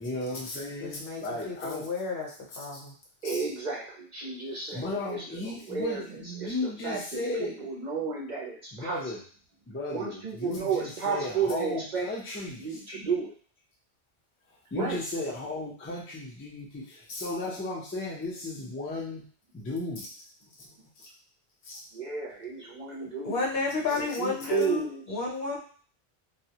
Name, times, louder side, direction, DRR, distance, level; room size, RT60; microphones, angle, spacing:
voice 1, 0.0-1.9 2.7-2.8 3.2-3.4 4.7-7.5 8.7-9.2 9.7-12.8 14.7-19.2 19.5-20.1 21.0-21.1 21.6-21.7, left 2 dB, 20° left, -3 dB, 0.4 m, -35 dB
voice 2, 0.8-2.9 23.2-25.6, left 3 dB, 65° left, -2 dB, 0.9 m, -31 dB
voice 3, 3.2-9.0 9.9-12.1 12.6-13.3 14.7-15.0 21.9-23.4 24.0-25.2, right 5 dB, 55° right, -4 dB, 0.5 m, -33 dB
2.2 x 2.1 x 2.7 m, 0.44 s
omnidirectional pair, 1.1 m